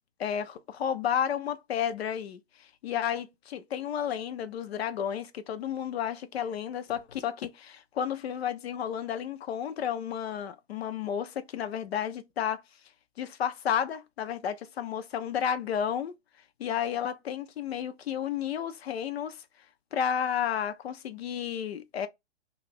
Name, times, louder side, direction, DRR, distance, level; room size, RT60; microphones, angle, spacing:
voice 1, 0.2-2.4 2.8-12.6 13.2-16.1 16.6-19.4 19.9-22.1, left 9 dB, 65° left, 0.6 m, -32 dB
2.7 x 2.5 x 3.2 m
hypercardioid pair, 130°, 34 cm